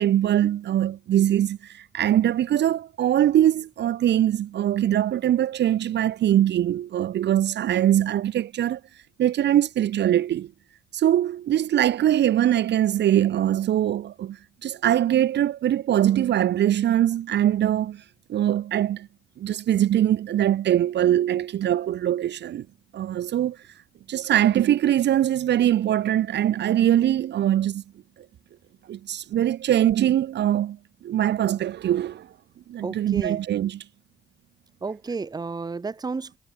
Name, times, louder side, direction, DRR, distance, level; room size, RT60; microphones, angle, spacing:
voice 1, 0.0-8.8 9.2-10.5 10.9-18.0 18.3-19.1 19.4-22.7 22.9-23.6 24.1-27.8 28.9-30.8 31.0-32.3 32.7-33.8, right 11 dB, 60° right, 0.7 m, -22 dB
voice 2, 32.8-33.4 34.8-36.4, right 4 dB, 20° right, 0.8 m, -32 dB
cardioid pair, 90°, 20 cm